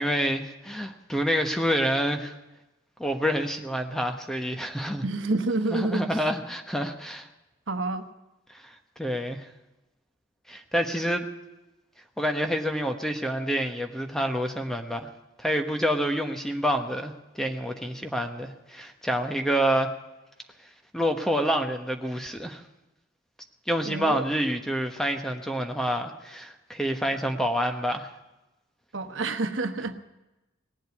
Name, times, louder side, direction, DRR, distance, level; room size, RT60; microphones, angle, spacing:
voice 1, 0.0-2.3 3.0-5.0 5.7-7.3 8.5-9.5 10.5-11.3 12.2-15.1 15.4-19.9 20.9-22.6 23.7-28.1, equal, ahead, 5 dB, 1.1 m, -28 dB
voice 2, 5.0-6.2 7.7-8.1 23.8-24.2 28.9-30.0, right 2 dB, 80° right, 8 dB, 1.2 m, -28 dB
19.0 x 7.8 x 9.6 m, 1.0 s
head